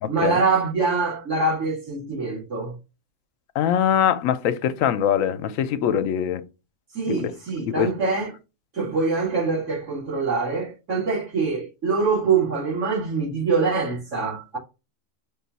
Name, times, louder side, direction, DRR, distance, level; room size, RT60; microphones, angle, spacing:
voice 1, 0.1-2.7 6.9-8.3 8.7-14.6, right 4 dB, 65° right, 2.3 m, -24 dB
voice 2, 3.6-6.4 7.1-7.3 7.6-7.9, left 9 dB, 80° left, 1.0 m, -22 dB
5.3 x 2.3 x 4.0 m
omnidirectional pair, 1.4 m